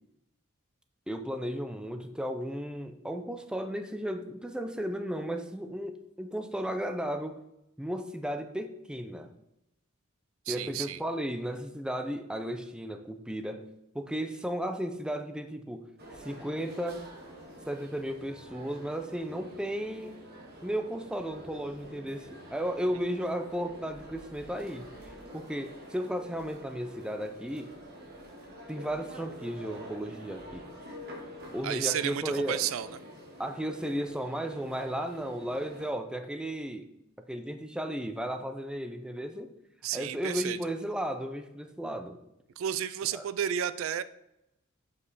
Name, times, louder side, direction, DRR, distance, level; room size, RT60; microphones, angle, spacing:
voice 1, 1.1-7.4 7.8-9.3 10.5-13.6 13.9-15.9 16.2-17.0 17.7-20.2 20.6-24.9 25.3-27.7 28.7-30.7 31.5-32.6 33.4-36.9 37.3-39.5 39.9-42.2 43.1-43.2, equal, 5° right, 7 dB, 0.5 m, -34 dB
voice 2, 10.5-11.0 31.6-33.0 39.8-40.6 42.6-44.0, right 9 dB, 65° right, 14 dB, 0.3 m, -32 dB
sound 1, 16.0-35.9, equal, 50° right, 1.6 m, -47 dB
8.3 x 5.4 x 4.1 m, 0.85 s
head